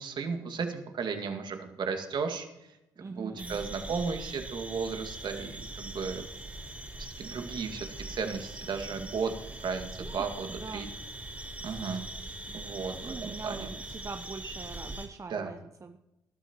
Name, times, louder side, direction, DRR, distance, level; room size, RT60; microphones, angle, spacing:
voice 1, 0.0-2.5 3.0-6.3 7.0-9.3 9.6-10.9 11.6-12.0 12.5-13.7 15.3-15.5, right 5 dB, 55° right, 5 dB, 2.1 m, -35 dB
voice 2, 3.0-3.6 10.0-10.1 10.6-10.9 12.5-16.0, right 4 dB, 35° right, 7 dB, 0.8 m, -43 dB
sound 1, 3.4-15.1, right 1 dB, 15° right, 4.0 m, -42 dB
20.0 x 12.0 x 3.0 m, 0.92 s
hypercardioid pair, 45°, 9 cm